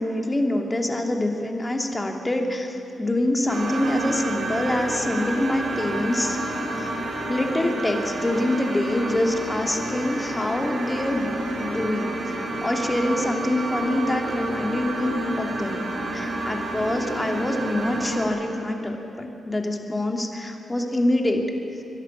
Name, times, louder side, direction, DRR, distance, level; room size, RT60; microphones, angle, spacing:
voice 1, 0.0-6.4 6.8-6.9 7.3-12.2 12.6-15.8 16.1-21.5, left 1 dB, 20° left, 3 dB, 2.9 m, -25 dB
sound 1, 3.5-18.3, right 2 dB, 50° right, 7.2 m, -29 dB
24.5 x 11.5 x 9.9 m, 2.8 s
supercardioid pair, 45°, 0 cm